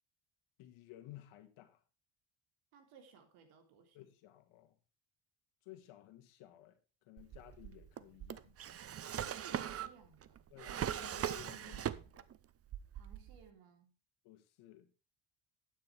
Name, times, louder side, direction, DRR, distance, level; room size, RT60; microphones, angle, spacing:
voice 1, 0.6-1.8 3.9-4.7 5.6-6.8 7.0-8.6 10.5-12.3 14.2-14.9, left 14 dB, 75° left, 1.8 m, -56 dB
voice 2, 2.7-4.0 9.2-10.4 12.9-13.9, right 6 dB, 85° right, 3.3 m, -60 dB
Drawer open or close, 7.2-12.4 12.7-13.5, right 10 dB, 30° right, 0.6 m, -41 dB
12.0 x 9.3 x 3.3 m
cardioid pair, 140°, 49 cm